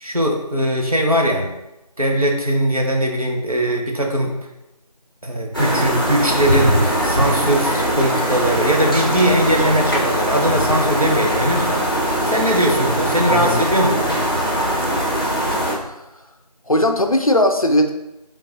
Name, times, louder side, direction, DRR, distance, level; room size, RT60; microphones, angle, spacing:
voice 1, 0.0-1.5 2.0-4.3 5.2-11.8 12.3-14.2, equal, 60° right, 0 dB, 0.9 m, -20 dB
sound 1, 5.5-15.7, equal, 35° left, 0.9 m, -21 dB
voice 2, 13.3-13.6 15.9-16.0 16.7-17.9, left 1 dB, 60° left, 6 dB, 0.5 m, -18 dB
4.4 x 3.7 x 2.6 m, 0.92 s
figure-of-eight pair, 180°, 21 cm